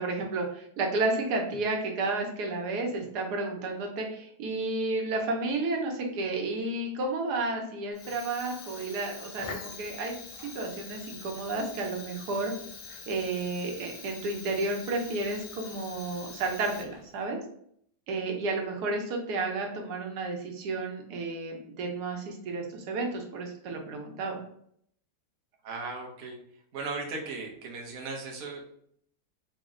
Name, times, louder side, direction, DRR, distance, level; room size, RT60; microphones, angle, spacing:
voice 1, 0.0-10.1 10.4-12.5 13.1-17.4 18.1-24.4, right 3 dB, 90° right, 2 dB, 1.3 m, -32 dB
Fire, 7.9-17.2, left 4 dB, 55° left, 0.6 m, -44 dB
voice 2, 25.6-26.4 26.7-28.6, right 3 dB, 50° right, 0 dB, 0.9 m, -37 dB
4.1 x 2.1 x 3.6 m, 0.66 s
omnidirectional pair, 1.7 m